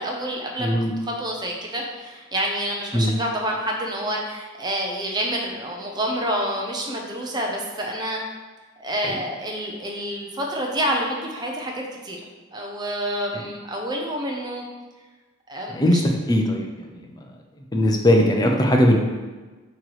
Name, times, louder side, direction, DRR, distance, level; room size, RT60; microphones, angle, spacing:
voice 1, 0.0-0.7 1.0-8.2 8.8-12.2 12.5-14.6 15.5-16.0, equal, 20° right, 0 dB, 0.8 m, -28 dB
voice 2, 0.6-0.9 2.9-3.2 9.0-9.1 15.7-16.0 16.3-16.7 16.9-17.0 17.7-19.0, left 1 dB, 20° left, 1 dB, 0.6 m, -19 dB
8.0 x 3.1 x 4.8 m, 1.3 s
head